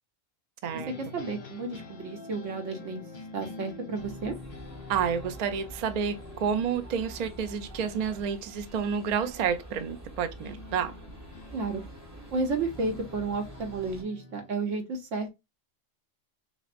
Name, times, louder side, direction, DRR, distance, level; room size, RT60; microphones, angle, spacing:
sound 1, 0.7-9.1 10.4-14.7, left 3 dB, 50° left, 0.7 m, -47 dB
voice 1, 1.1-3.0 3.3-4.4 11.5-11.8 12.3-15.3, right 3 dB, 75° right, 1.2 m, -32 dB
sound 2, 4.0-14.0, equal, 15° right, 1.0 m, -47 dB
voice 2, 4.9-6.1 6.4-11.0, right 7 dB, 55° right, 0.4 m, -29 dB
6.0 x 2.1 x 2.5 m
omnidirectional pair, 1.3 m